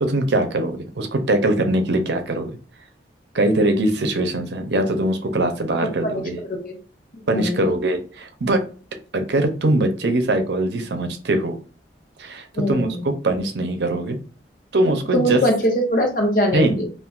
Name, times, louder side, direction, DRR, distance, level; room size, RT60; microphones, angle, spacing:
voice 1, 0.0-2.5 3.3-6.4 7.3-8.6 9.1-11.6 12.2-14.2 14.7-15.4 16.5-16.8, right 1 dB, 75° right, 6 dB, 0.6 m, -22 dB
voice 2, 7.3-7.7 12.6-13.1 15.1-16.8, equal, 50° left, 2 dB, 0.9 m, -22 dB
3.6 x 2.5 x 2.4 m, 0.38 s
head